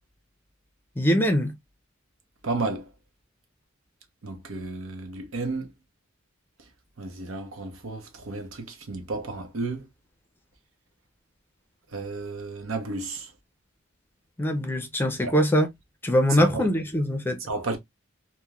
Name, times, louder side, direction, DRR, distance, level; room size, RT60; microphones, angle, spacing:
voice 1, 1.0-1.5 14.4-15.7 16.0-17.4, equal, 10° left, 0.5 m, -22 dB
voice 2, 2.4-2.9 4.2-5.7 7.0-9.8 11.9-13.3 15.2-15.3 16.4-16.7 17.5-17.8, right 3 dB, 90° right, 0.8 m, -32 dB
3.0 x 2.1 x 2.3 m
head